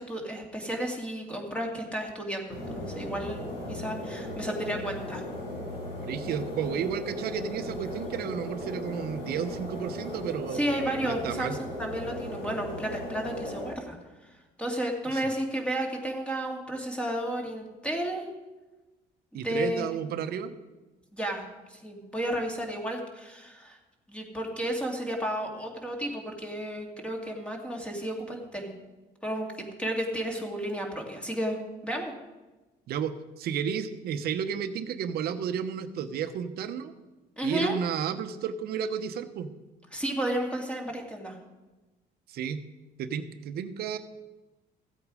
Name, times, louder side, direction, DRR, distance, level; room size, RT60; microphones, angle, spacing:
voice 1, 0.0-5.2 10.5-14.0 14.2-14.3 14.6-18.3 19.4-19.9 21.1-21.4 21.7-23.8 24.1-28.7 29.2-29.5 29.8-32.1 37.4-37.7 39.9-41.4, right 1 dB, 5° left, 1 dB, 2.2 m, -32 dB
sound 1, 2.5-13.7, left 1 dB, 90° left, 4.5 m, -37 dB
voice 2, 6.0-10.6 11.0-11.6 15.1-15.2 19.3-20.5 32.9-36.9 37.4-39.5 42.3-42.6 43.0-44.0, right 8 dB, 65° right, 10 dB, 0.9 m, -32 dB
15.0 x 8.2 x 4.9 m, 1.2 s
cardioid pair, 110°, 17 cm